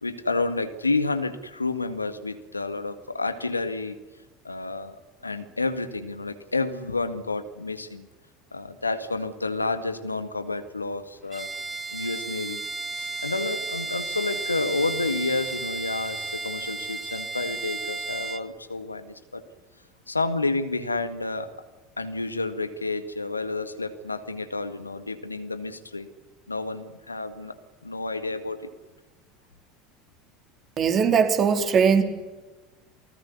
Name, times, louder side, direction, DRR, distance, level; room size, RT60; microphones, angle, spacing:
voice 1, 0.0-4.0 4.4-5.0 5.2-8.1 8.5-11.5 11.9-12.6 12.9-19.4 20.1-21.5 22.0-26.1 26.5-27.6 27.8-28.6, left 3 dB, 85° left, 11 dB, 1.8 m, -30 dB
Bowed string instrument, 11.3-18.5, right 3 dB, 20° right, 1.7 m, -33 dB
voice 2, 30.8-32.0, right 6 dB, 35° right, 7 dB, 3.8 m, -20 dB
28.5 x 19.5 x 9.6 m, 1.2 s
figure-of-eight pair, 70°, 0 cm